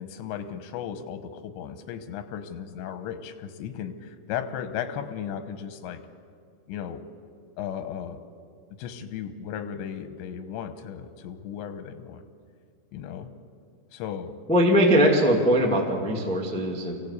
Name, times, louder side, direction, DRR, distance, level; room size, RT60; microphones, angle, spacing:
voice 1, 0.0-6.0 6.7-7.0 7.6-8.2 8.8-12.2 12.9-13.3 13.9-14.4, left 8 dB, 85° left, 9 dB, 3.4 m, -35 dB
voice 2, 14.5-16.9, equal, 5° left, -1 dB, 0.7 m, -21 dB
25.0 x 16.0 x 8.3 m, 2.2 s
omnidirectional pair, 5.1 m